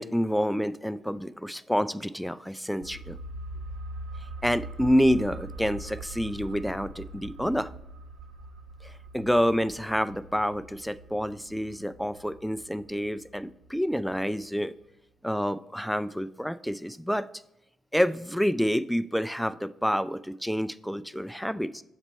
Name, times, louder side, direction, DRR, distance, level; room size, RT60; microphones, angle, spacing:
voice 1, 0.0-3.2 4.4-7.7 8.8-14.7 15.2-17.3 17.9-21.8, equal, ahead, 15 dB, 0.3 m, -28 dB
sound 1, 2.8-14.2 14.5-14.6, right 2 dB, 80° right, 0.8 m, -42 dB
6.6 x 4.2 x 4.3 m, 0.82 s
hypercardioid pair, 45°, 0 cm